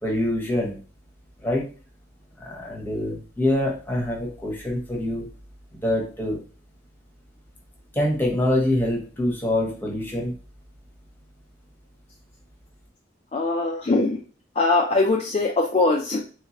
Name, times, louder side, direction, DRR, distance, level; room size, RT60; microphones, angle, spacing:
voice 1, 0.0-0.8 1.4-1.7 2.4-5.3 5.7-6.4 7.9-10.3, left 1 dB, 10° left, -2 dB, 0.9 m, -25 dB
voice 2, 13.3-14.2 14.6-16.2, left 3 dB, 35° left, 0 dB, 0.4 m, -21 dB
3.2 x 2.9 x 2.8 m, 0.38 s
head